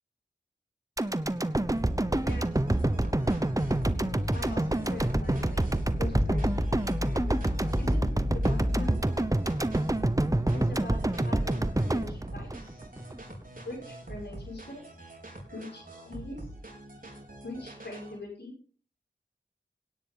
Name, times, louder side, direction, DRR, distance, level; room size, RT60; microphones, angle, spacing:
sound 1, 1.0-13.2 13.6-13.7, right 1 dB, 20° right, 0.9 m, -27 dB
sound 2, 1.8-18.2, right 1 dB, 50° right, 4.5 m, -45 dB
voice 1, 2.2-2.6 4.3-6.8 7.8-9.1 10.5-12.5 13.6-14.8 15.5-16.5 17.4-18.5, left 2 dB, 70° left, -1 dB, 6.3 m, -42 dB
sound 3, 3.0-9.0, left 1 dB, 50° left, 4.5 m, -34 dB
17.5 x 10.0 x 3.9 m, 0.40 s
wide cardioid pair, 45°, 18 cm